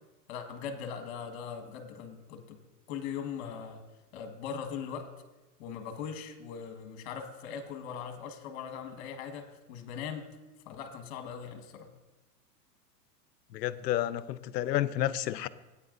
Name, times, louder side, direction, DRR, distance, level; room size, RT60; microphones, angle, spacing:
voice 1, 0.3-2.6 2.9-3.8 4.1-5.1 5.6-10.2 10.6-11.9, left 7 dB, 40° left, 6 dB, 1.4 m, -40 dB
voice 2, 13.5-15.5, left 12 dB, 75° left, 16 dB, 0.7 m, -30 dB
17.0 x 9.0 x 2.5 m, 1.1 s
hypercardioid pair, 155°, 50 cm